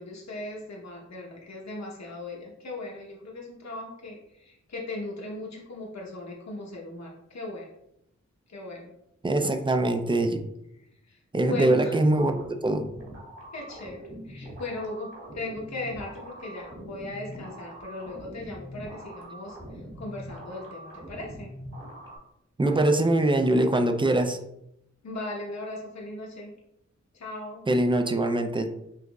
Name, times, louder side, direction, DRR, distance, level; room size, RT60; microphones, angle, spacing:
voice 1, 0.0-7.7 8.5-8.9 11.1-12.0 13.5-21.5 25.0-26.5 27.1-27.6, left 2 dB, 65° left, -2 dB, 1.0 m, -38 dB
voice 2, 9.2-10.4 11.3-12.9 22.6-24.4 27.7-28.7, right 1 dB, 15° right, 7 dB, 0.4 m, -23 dB
sound 1, 12.2-22.2, right 1 dB, 45° right, 1.5 m, -43 dB
5.9 x 2.9 x 2.3 m, 0.81 s
wide cardioid pair, 65°, 29 cm